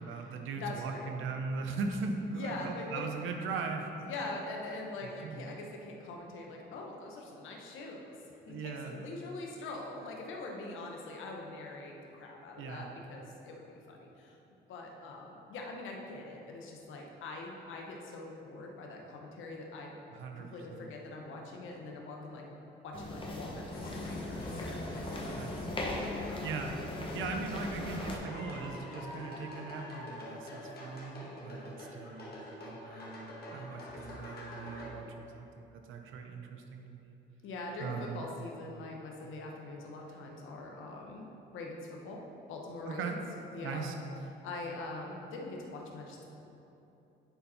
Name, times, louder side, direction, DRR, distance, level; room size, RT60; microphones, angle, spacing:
voice 1, 0.0-3.9 5.2-5.5 8.5-8.9 12.6-12.9 20.1-20.9 25.4-25.8 26.4-26.8 27.1-37.2 37.8-38.2 42.9-43.2 43.6-43.9, right 4 dB, 85° right, 4 dB, 0.8 m, -39 dB
voice 2, 0.6-1.1 2.3-3.0 4.0-8.2 8.5-14.4 14.7-19.9 20.3-22.4 22.8-25.2 26.1-26.4 37.4-42.2 42.5-43.2 43.5-43.9 44.4-46.2, left 2 dB, 80° left, 0 dB, 1.1 m, -43 dB
sound 1, 22.9-28.2, left 2 dB, 25° left, 1.2 m, -38 dB
sound 2, 23.7-34.9, left 1 dB, 50° left, 1.7 m, -46 dB
9.2 x 4.4 x 4.2 m, 2.9 s
cardioid pair, 90°, 20 cm